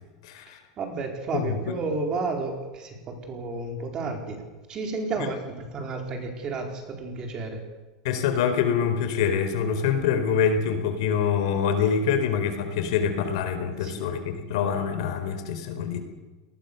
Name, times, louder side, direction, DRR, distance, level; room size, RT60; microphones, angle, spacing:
voice 1, 0.2-0.6 1.3-1.6 8.0-16.0, left 7 dB, 60° left, 8 dB, 4.2 m, -25 dB
voice 2, 0.8-7.6 13.7-14.0, right 3 dB, 25° right, 3 dB, 4.4 m, -32 dB
27.0 x 20.0 x 6.9 m, 1.2 s
supercardioid pair, 165°, 3 cm